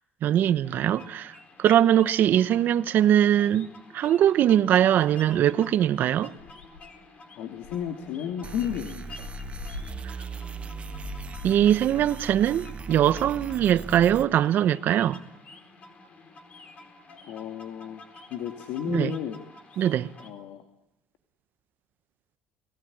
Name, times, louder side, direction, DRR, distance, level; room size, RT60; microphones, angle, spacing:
voice 1, 0.2-1.3 1.6-3.7 3.9-6.3 11.4-15.2 18.9-19.1 19.8-20.1, right 11 dB, 55° right, 1.0 m, -21 dB
sound 1, 0.6-20.3, left 3 dB, 35° left, 4.3 m, -49 dB
Viento helado, 4.9-5.0 5.4-5.6 6.0-6.1 6.3-7.0 7.6-11.8, left 6 dB, 90° left, 2.8 m, -44 dB
voice 2, 7.4-9.3 17.3-18.0 18.3-19.4 19.7-19.9 20.2-20.6, left 9 dB, 75° left, 2.2 m, -33 dB
sound 2, 8.4-14.3, right 5 dB, 30° right, 1.0 m, -38 dB
30.0 x 19.0 x 8.7 m
cardioid pair, 105°, 4 cm